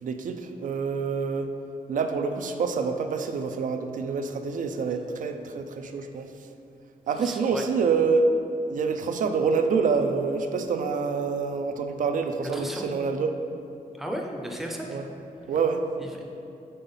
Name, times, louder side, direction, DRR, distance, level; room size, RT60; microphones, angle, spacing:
voice 1, 0.0-1.5 1.9-6.3 7.1-8.3 8.7-13.3 14.9-15.0 15.5-15.8, right 5 dB, 60° right, 7 dB, 0.4 m, -27 dB
voice 2, 7.2-7.6 12.5-12.8 13.9-15.0 16.0-16.2, equal, ahead, 0 dB, 0.5 m, -35 dB
5.5 x 4.0 x 5.4 m, 2.7 s
wide cardioid pair, 175°, 15 cm